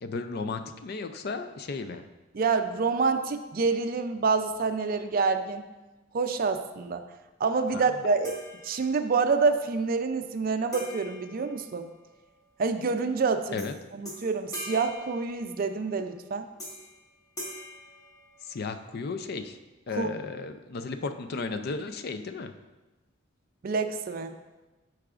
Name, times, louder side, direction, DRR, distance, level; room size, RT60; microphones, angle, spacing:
voice 1, 0.0-2.1 7.7-7.8 13.5-13.8 18.4-19.6 19.9-22.5, left 4 dB, 50° left, 8 dB, 0.4 m, -34 dB
voice 2, 2.3-5.6 6.1-7.0 7.4-8.4 8.6-11.9 12.6-13.7 13.9-16.4 19.9-20.1 23.6-24.4, right 4 dB, 45° right, 8 dB, 0.4 m, -27 dB
sound 1, 8.2-9.2 10.7-12.3 13.6-13.8 14.1-15.9 16.6-17.0 17.4-18.8, left 1 dB, 20° left, 1.4 m, -43 dB
11.5 x 4.7 x 2.5 m, 1.1 s
head